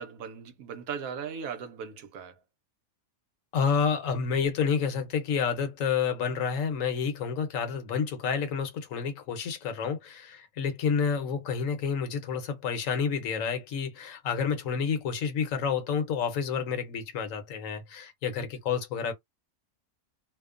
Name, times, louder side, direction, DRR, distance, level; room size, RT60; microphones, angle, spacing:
voice 1, 0.0-2.4, right 6 dB, 85° right, 1.1 m, -38 dB
voice 2, 3.5-19.1, left 6 dB, 75° left, 1.1 m, -29 dB
2.8 x 2.1 x 2.4 m
omnidirectional pair, 1.4 m